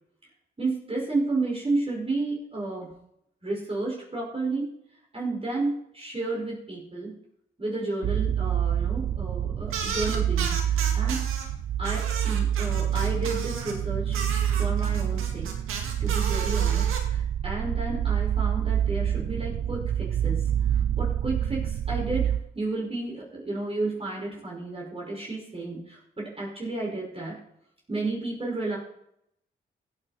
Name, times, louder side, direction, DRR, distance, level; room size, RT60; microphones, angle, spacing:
voice 1, 0.6-2.9 3.4-4.7 5.1-7.1 7.6-11.2 11.8-14.2 14.6-15.5 16.0-27.4 27.9-28.8, right 2 dB, 30° right, -3 dB, 5.5 m, -32 dB
sound 1, 8.0-22.4, right 10 dB, 70° right, 0.8 m, -27 dB
sound 2, 9.7-11.4 11.8-13.8 14.1-17.0, right 5 dB, 90° right, 2.0 m, -34 dB
16.0 x 9.3 x 4.4 m, 0.74 s
supercardioid pair, 50°, 21 cm